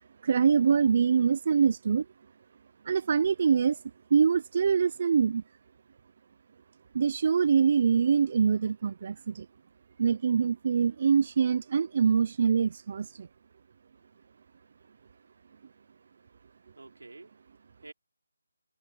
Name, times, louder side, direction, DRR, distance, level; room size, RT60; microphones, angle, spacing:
voice 1, 0.2-2.1 2.8-3.8 4.1-5.4 6.9-9.5 10.0-13.3, right 6 dB, 40° right, 0.4 m, -24 dB
voice 2, 16.7-17.9, right 3 dB, 85° right, 4.0 m, -50 dB
figure-of-eight pair, 165°, 0 cm